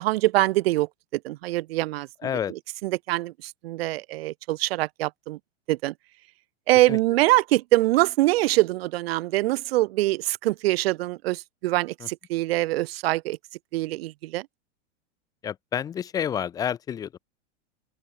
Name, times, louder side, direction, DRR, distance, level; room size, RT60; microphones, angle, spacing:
voice 1, 0.0-2.1 2.5-5.4 5.7-5.9 6.7-13.4 13.7-14.5, right 18 dB, 60° right, 1.2 m, -24 dB
voice 2, 2.2-2.5 6.9-7.0 12.0-12.1 15.4-17.2, left 9 dB, 10° left, 0.5 m, -29 dB
open air
supercardioid pair, 160°, 35 cm